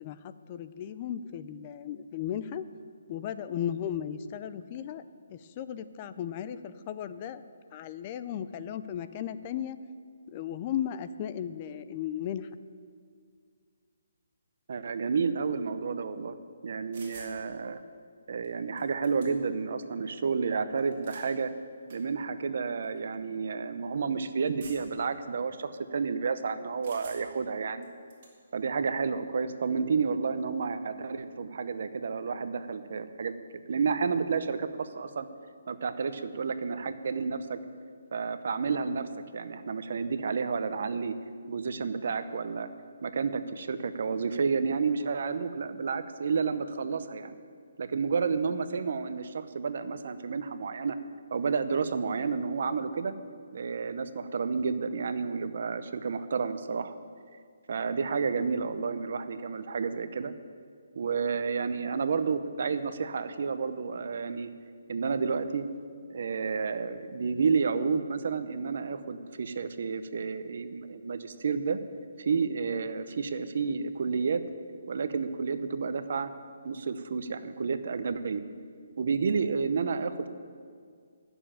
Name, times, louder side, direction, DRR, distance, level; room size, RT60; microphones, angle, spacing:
voice 1, 0.0-2.6 3.1-5.0 5.3-9.8 10.3-12.5, left 10 dB, 25° left, 12 dB, 0.4 m, -36 dB
voice 2, 14.7-16.4 16.6-17.8 18.3-21.5 21.9-27.9 28.5-33.3 33.7-35.3 35.7-37.6 38.1-41.2 41.5-42.7 43.0-47.3 47.8-51.0 51.3-53.1 53.5-57.0 57.7-60.3 61.0-64.5 64.9-65.7 66.1-71.8 72.2-74.4 74.9-76.3 76.6-78.4 79.0-80.3, right 5 dB, 50° right, 11 dB, 0.8 m, -30 dB
sound 1, 16.9-17.4 18.4-18.5 18.8-19.6 20.8-21.3 21.9-22.0 22.8-23.0 24.6-25.0 26.8-27.4 27.8-28.3, right 4 dB, 35° right, 2.6 m, -49 dB
11.5 x 7.0 x 8.7 m, 2.1 s
hypercardioid pair, 170°, 0 cm